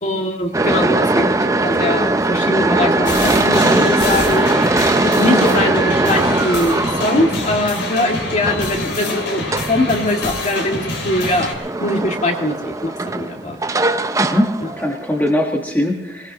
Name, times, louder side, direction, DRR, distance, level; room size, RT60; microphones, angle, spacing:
voice 1, 0.0-4.5 4.9-11.5 11.8-13.6 14.6-14.7, left 1 dB, 40° left, 1 dB, 2.2 m, -21 dB
sound 1, 0.5-15.3, right 2 dB, 15° right, 0.5 m, -20 dB
sound 2, 3.1-11.5, left 2 dB, 70° left, 3.7 m, -25 dB
voice 2, 14.2-16.3, left 1 dB, 10° left, 0 dB, 1.3 m, -20 dB
21.0 x 21.0 x 3.0 m, 0.98 s
head